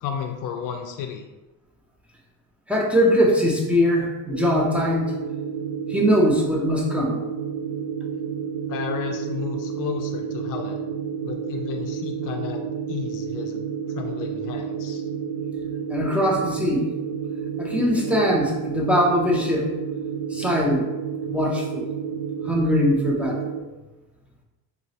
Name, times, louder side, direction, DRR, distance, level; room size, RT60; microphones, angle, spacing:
voice 1, 0.0-1.2 8.7-10.8 11.2-12.6 12.9-13.6 13.9-15.0, left 7 dB, 55° left, 4 dB, 0.5 m, -32 dB
voice 2, 2.7-5.1 5.9-7.2 15.9-16.9 17.6-19.7 20.3-20.9 21.3-21.9 22.5-23.4, equal, 5° right, -2 dB, 0.5 m, -21 dB
sound 1, 4.3-23.6, right 7 dB, 65° right, 0.6 m, -30 dB
3.9 x 3.0 x 2.7 m, 1.1 s
cardioid pair, 130°, 39 cm